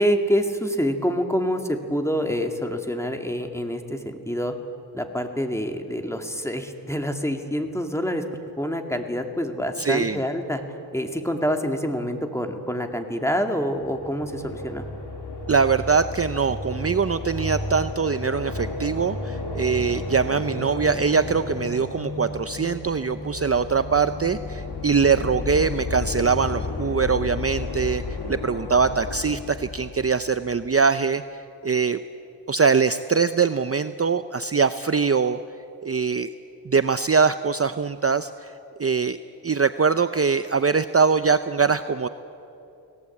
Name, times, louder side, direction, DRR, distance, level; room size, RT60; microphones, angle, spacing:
voice 1, 0.0-4.5 4.9-8.2 8.6-10.6 10.9-14.8, equal, 5° left, 4 dB, 2.2 m, -26 dB
voice 2, 9.8-10.2 15.5-32.0 32.5-35.4 35.8-36.3 36.7-38.5 38.8-39.2 39.4-42.1, right 5 dB, 35° right, 11 dB, 0.6 m, -22 dB
sound 1, 13.7-30.7, left 3 dB, 80° left, 3.0 m, -33 dB
30.0 x 18.5 x 8.5 m, 2.8 s
wide cardioid pair, 85°, 40 cm